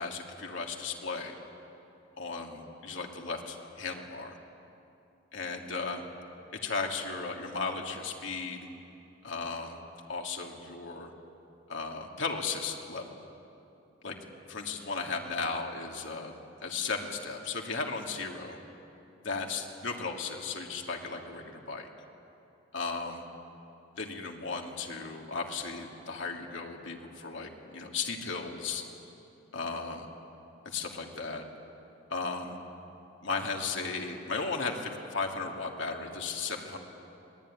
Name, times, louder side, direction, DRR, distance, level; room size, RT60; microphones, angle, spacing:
voice 1, 0.0-1.4 2.2-4.4 5.3-6.0 6.5-8.7 9.2-9.8 10.1-11.1 11.7-13.2 14.0-14.2 14.5-16.3 16.6-18.6 19.2-21.9 22.7-23.2 24.0-28.9 29.5-30.1 30.6-31.4 32.1-32.6 33.2-36.8, left 4 dB, 65° left, 1 dB, 2.7 m, -35 dB
25.5 x 20.0 x 9.9 m, 2.8 s
head